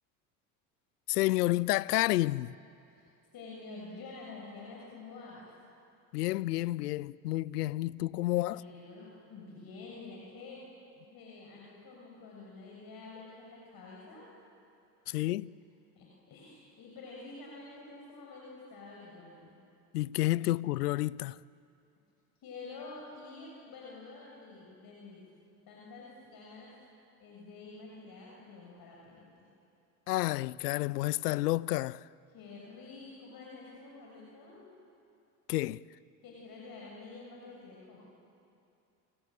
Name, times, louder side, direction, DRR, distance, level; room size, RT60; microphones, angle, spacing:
voice 1, 1.1-2.5 6.1-8.6 15.1-15.5 19.9-21.4 30.1-32.0 35.5-35.8, left 17 dB, 90° left, 0.6 m, -30 dB
voice 2, 3.3-5.5 8.3-10.6 11.0-14.3 16.0-19.5 22.4-25.3 25.7-26.7 27.2-29.5 32.3-34.7 36.2-38.0, left 3 dB, 50° left, 6.9 m, -48 dB
29.0 x 27.0 x 7.7 m
hypercardioid pair, 75°, 46 cm